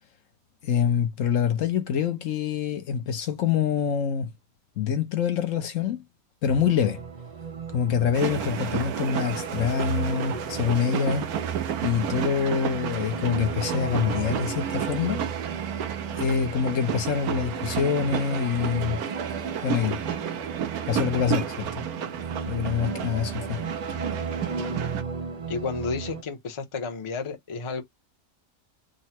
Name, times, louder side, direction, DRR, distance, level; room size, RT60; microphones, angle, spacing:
voice 1, 0.6-4.3 4.8-6.0 6.4-7.0 7.7-11.3 11.8-15.3 16.2-19.0 19.6-20.0 20.9-21.9 22.4-23.6, left 7 dB, 65° left, 1.0 m, -25 dB
sound 1, 6.5-26.2, right 5 dB, 65° right, 0.3 m, -35 dB
sound 2, 8.1-25.0, right 9 dB, 90° right, 1.2 m, -32 dB
voice 2, 25.5-27.8, left 4 dB, 30° left, 0.7 m, -31 dB
3.8 x 2.1 x 4.2 m
omnidirectional pair, 1.5 m